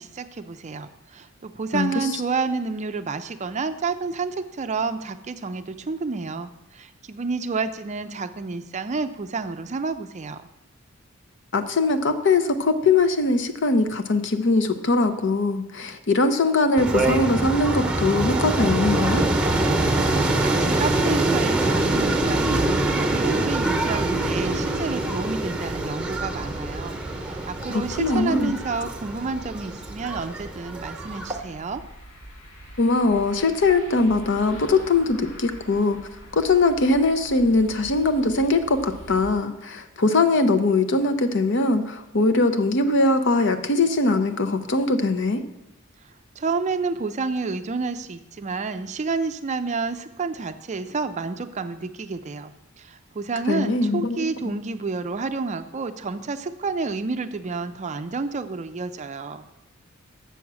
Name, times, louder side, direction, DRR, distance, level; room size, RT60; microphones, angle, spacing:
voice 1, 0.0-10.4 20.4-31.8 46.4-52.5 52.8-59.4, right 4 dB, 35° right, 9 dB, 0.4 m, -29 dB
voice 2, 1.7-2.1 11.5-19.2 27.7-28.5 32.8-36.0 36.3-45.4 53.5-54.2, left 3 dB, 60° left, 9 dB, 0.7 m, -21 dB
sound 1, 16.8-31.4, right 2 dB, 5° right, 1.0 m, -24 dB
sound 2, 19.8-39.3, right 1 dB, 75° left, 2.6 m, -40 dB
7.0 x 5.9 x 7.4 m, 0.93 s
head